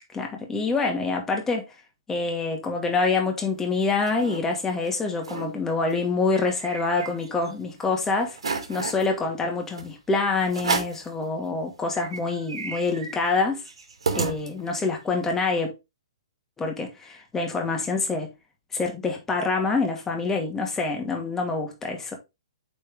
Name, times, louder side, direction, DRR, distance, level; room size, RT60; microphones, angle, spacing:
voice 1, 0.1-1.7 2.1-8.4 8.7-13.6 14.1-15.7 16.6-18.3 18.7-22.2, left 3 dB, 10° left, 2.2 m, -26 dB
sound 1, 3.6-4.4 4.8-4.9 5.2-5.5 5.9-7.5 7.9-8.0 8.3-9.1 9.8-9.9 10.5-11.1 11.6-11.7 11.9-14.9, right 4 dB, 75° right, 2.5 m, -32 dB
8.8 x 4.4 x 3.6 m
hypercardioid pair, 130°, 3 cm